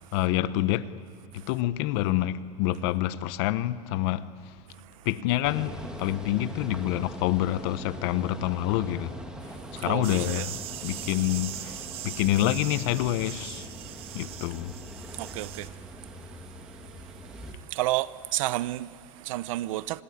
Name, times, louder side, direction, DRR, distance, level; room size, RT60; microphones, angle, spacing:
voice 1, 0.1-0.9 1.5-4.2 5.1-9.1 9.7-10.6 10.8-11.8 12.0-13.7 14.1-14.7, left 14 dB, 50° left, 0.9 m, -27 dB
sound 1, 5.4-17.5, right 1 dB, 5° right, 1.9 m, -42 dB
voice 2, 9.7-10.5 15.1-15.8 16.2-16.3 17.0-17.1 17.6-20.0, right 16 dB, 75° right, 0.8 m, -31 dB
sound 2, 10.0-15.7, right 13 dB, 35° right, 1.0 m, -40 dB
25.5 x 19.5 x 9.9 m
supercardioid pair, 175°, 17 cm